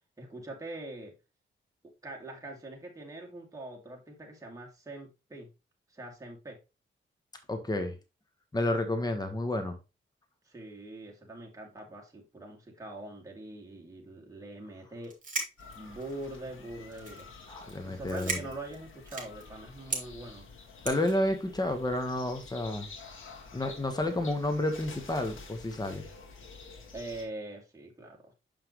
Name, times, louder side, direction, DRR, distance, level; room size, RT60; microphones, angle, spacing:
voice 1, 0.2-1.1 1.8-5.5 5.9-6.6 10.5-15.1 15.7-17.3 17.9-20.5 26.9-28.3, right 2 dB, 15° right, 2.6 m, -43 dB
voice 2, 7.5-8.0 8.5-9.8 17.5-18.4 20.8-22.9 23.5-26.1, left 1 dB, 20° left, 1.3 m, -30 dB
sound 1, 15.0-16.3 16.9-17.3 17.6-17.8 18.0-19.4 19.9-20.0 20.9-21.2, right 3 dB, 40° right, 2.9 m, -36 dB
sound 2, 15.6-27.3, left 4 dB, 70° left, 1.8 m, -49 dB
6.8 x 5.7 x 3.1 m
cardioid pair, 85°, 21 cm